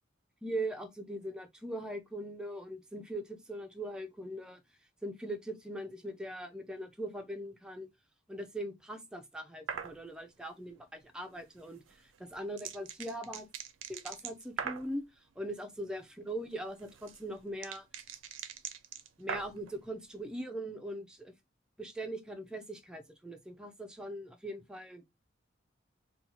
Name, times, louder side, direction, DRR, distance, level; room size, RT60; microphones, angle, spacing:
voice 1, 0.4-4.6 5.0-7.9 8.3-11.8 12.2-13.5 13.9-15.0 15.4-17.9 19.2-21.3 21.8-25.0, right 1 dB, 5° right, 0.4 m, -41 dB
sound 1, 9.7-10.0 11.9-14.9 16.5-19.7, right 7 dB, 85° right, 0.4 m, -41 dB
2.7 x 2.2 x 4.1 m
head